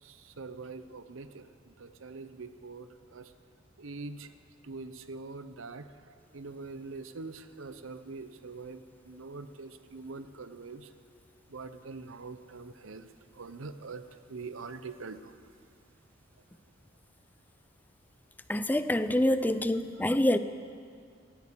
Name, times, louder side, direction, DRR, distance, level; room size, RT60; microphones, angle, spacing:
voice 1, 0.0-3.3 3.8-4.3 4.6-10.9 11.5-13.1 13.3-15.4, right 3 dB, 80° right, 11 dB, 0.8 m, -44 dB
voice 2, 18.5-20.4, left 1 dB, 10° left, 12 dB, 0.5 m, -26 dB
16.5 x 9.3 x 8.4 m, 2.2 s
head